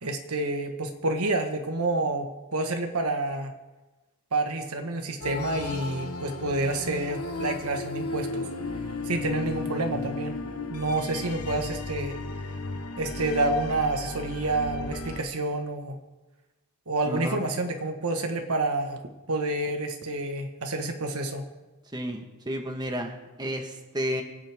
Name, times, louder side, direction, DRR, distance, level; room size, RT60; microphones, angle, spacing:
voice 1, 0.0-3.5 4.3-8.5 9.0-10.4 10.7-12.2 13.0-16.0 16.9-19.0 19.3-21.5, right 2 dB, 80° right, 5 dB, 1.5 m, -28 dB
sound 1, 5.2-15.2, left 2 dB, 90° left, 1.3 m, -35 dB
voice 2, 17.1-17.4 21.9-24.2, equal, 20° right, 3 dB, 1.4 m, -32 dB
25.5 x 9.0 x 3.6 m, 1.1 s
head